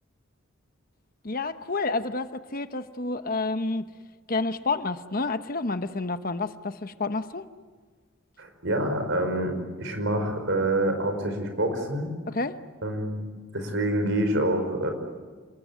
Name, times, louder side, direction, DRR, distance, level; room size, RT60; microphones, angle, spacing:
voice 1, 1.2-3.9 4.3-7.5 12.3-12.6, left 3 dB, 40° left, 10 dB, 1.0 m, -29 dB
voice 2, 8.4-12.1 12.8-13.2 13.5-14.9, right 1 dB, 60° right, 7 dB, 5.1 m, -27 dB
28.0 x 21.0 x 9.5 m, 1.5 s
head